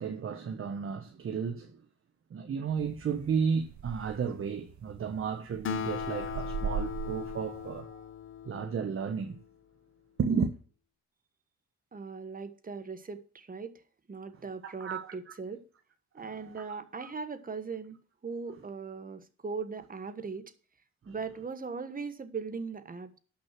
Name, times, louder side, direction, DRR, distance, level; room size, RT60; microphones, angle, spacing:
voice 1, 0.0-1.8 2.3-8.1 8.4-9.4 10.2-10.5 14.6-15.1 16.2-16.6 21.0-21.1, right 6 dB, 45° right, 1.2 m, -33 dB
sound 1, 2.8-7.8, right 6 dB, 70° right, 1.8 m, -41 dB
Acoustic guitar, 5.6-9.4, left 9 dB, 40° left, 0.6 m, -38 dB
voice 2, 11.9-13.8 14.1-15.6 16.1-18.0 18.2-20.5 21.0-23.2, right 5 dB, 30° right, 1.4 m, -39 dB
12.0 x 6.3 x 6.1 m
cardioid pair, 90°, 30 cm